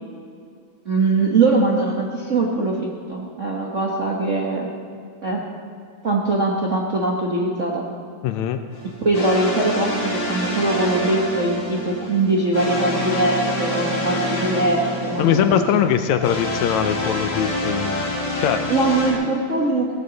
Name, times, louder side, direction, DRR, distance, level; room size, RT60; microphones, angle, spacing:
voice 1, 0.8-4.7 5.2-5.4 6.0-7.8 9.0-15.6 18.7-19.9, right 2 dB, 70° right, -3 dB, 0.7 m, -21 dB
voice 2, 8.2-8.6 15.2-18.1 18.4-18.6, left 9 dB, 75° left, 8 dB, 1.9 m, -21 dB
sound 1, 8.7-19.1, equal, 35° left, 3.6 m, -27 dB
17.5 x 14.0 x 4.0 m, 2.3 s
omnidirectional pair, 3.4 m